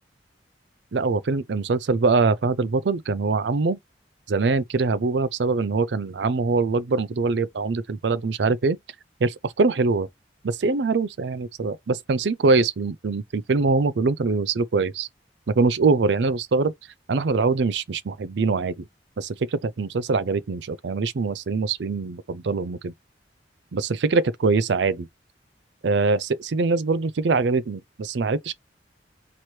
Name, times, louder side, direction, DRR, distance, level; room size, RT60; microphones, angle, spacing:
voice 1, 0.9-3.8 4.3-8.8 9.2-10.1 10.4-15.1 15.6-16.7 17.1-18.8 19.2-22.9 23.7-25.1 25.8-28.5, right 4 dB, 70° right, 0.5 m, -23 dB
4.4 x 2.9 x 3.2 m
head